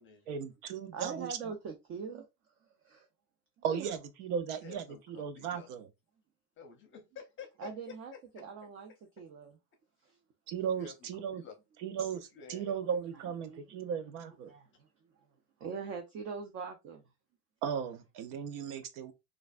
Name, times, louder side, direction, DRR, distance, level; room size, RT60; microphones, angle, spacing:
voice 1, 0.3-1.5 3.6-5.9 10.5-11.4 11.8-14.5 17.6-19.1, right 7 dB, 65° right, 0.7 m, -36 dB
voice 2, 0.9-2.2 2.8-3.1 3.7-3.8 7.6-9.6 10.0-10.2 13.5-13.6 14.5-14.9 15.6-17.0, right 5 dB, 30° right, 0.4 m, -42 dB
voice 3, 4.6-5.7 6.6-8.4 10.7-11.5 12.4-12.7, left 6 dB, 25° left, 0.6 m, -50 dB
3.2 x 2.4 x 2.4 m
supercardioid pair, 120°, 48 cm